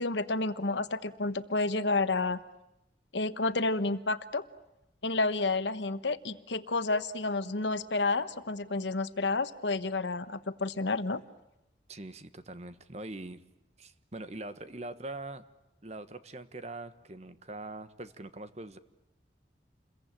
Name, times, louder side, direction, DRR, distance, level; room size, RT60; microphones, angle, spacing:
voice 1, 0.0-2.4 3.1-4.4 5.0-11.2, left 3 dB, 85° left, 12 dB, 1.2 m, -30 dB
voice 2, 11.9-13.4 13.8-15.4 15.8-18.8, right 2 dB, 40° right, 12 dB, 1.3 m, -42 dB
29.0 x 22.0 x 9.0 m, 0.90 s
head